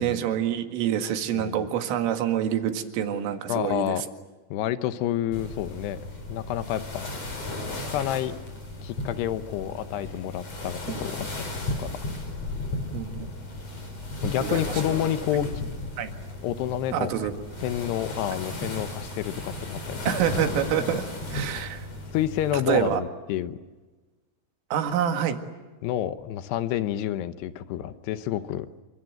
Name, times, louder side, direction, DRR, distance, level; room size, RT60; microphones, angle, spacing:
voice 1, 0.0-4.0 10.9-11.1 12.9-13.2 14.4-14.7 16.0-16.1 16.9-17.3 20.1-21.0 21.3-21.9 22.7-23.0 24.7-25.4, right 9 dB, 80° right, 6 dB, 4.5 m, -26 dB
voice 2, 1.3-1.7 3.5-4.0 4.5-6.0 6.3-7.1 7.9-8.4 8.8-11.5 11.8-11.9 14.2-15.5 16.4-17.3 17.6-20.1 20.8-20.9 22.1-23.6 25.8-28.7, left 12 dB, 75° left, 11 dB, 2.6 m, -29 dB
sound 1, 5.3-22.9, left 2 dB, 35° left, 5.5 m, -35 dB
28.0 x 26.0 x 7.8 m, 1.2 s
omnidirectional pair, 5.7 m